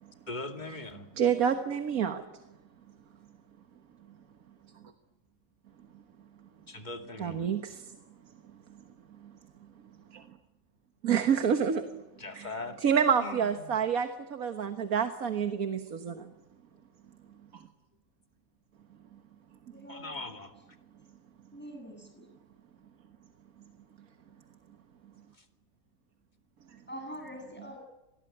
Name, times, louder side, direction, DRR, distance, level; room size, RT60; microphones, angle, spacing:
voice 1, 0.3-1.1 6.7-7.5 12.2-12.8 13.2-13.7 19.9-20.5, left 2 dB, 30° left, 2.5 m, -40 dB
voice 2, 1.1-2.4 4.1-4.2 4.7-4.9 5.9-6.0 6.4-6.5 7.2-9.7 10.1-10.4 11.0-12.0 12.3-16.3 17.5-17.7 19.1-19.2 19.8-19.9 24.0-24.1 25.0-25.1 26.7-26.8, right 7 dB, 85° right, 1.8 m, -30 dB
voice 3, 19.7-20.3 21.5-22.3 26.9-27.8, equal, 5° left, 7.4 m, -44 dB
26.0 x 20.0 x 9.9 m
omnidirectional pair, 1.5 m